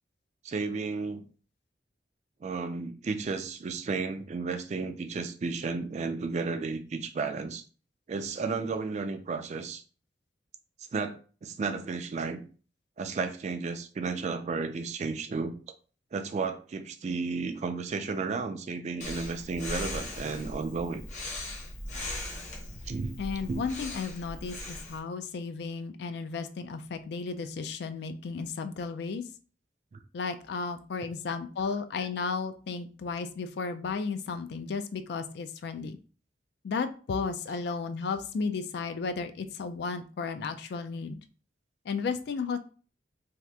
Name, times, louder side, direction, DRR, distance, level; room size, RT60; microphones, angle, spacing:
voice 1, 0.4-1.2 2.4-7.6 8.1-9.8 10.9-12.4 13.0-15.6 16.1-21.0 22.9-23.2 23.5-23.6, right 4 dB, 40° right, 8 dB, 0.3 m, -33 dB
Breathing, 19.0-25.0, left 1 dB, 40° left, 0.8 m, -39 dB
voice 2, 23.2-29.2 30.1-36.0 36.6-41.2 41.9-42.6, left 4 dB, 60° left, 9 dB, 0.3 m, -34 dB
2.8 x 2.4 x 3.3 m, 0.39 s
head